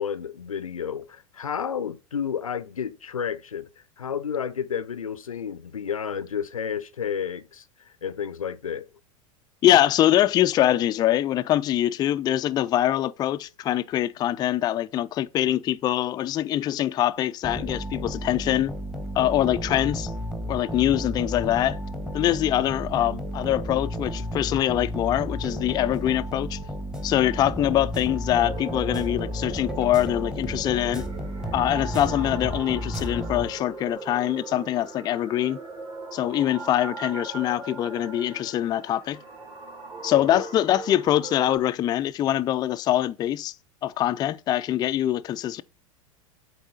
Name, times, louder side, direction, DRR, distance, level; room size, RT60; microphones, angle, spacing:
voice 1, 0.0-3.7 4.0-7.6 8.0-8.8 40.1-40.4, left 7 dB, 85° left, 0.5 m, -31 dB
voice 2, 9.6-18.7 19.2-20.1 20.5-21.8 22.1-26.6 27.0-31.1 31.5-35.6 36.1-39.2 40.0-43.5 43.8-45.6, left 12 dB, 25° left, 0.3 m, -24 dB
sound 1, 17.4-33.9, equal, 5° right, 1.1 m, -33 dB
sound 2, 28.4-41.6, right 3 dB, 35° right, 2.5 m, -39 dB
7.8 x 4.0 x 3.9 m
figure-of-eight pair, 90°, 17 cm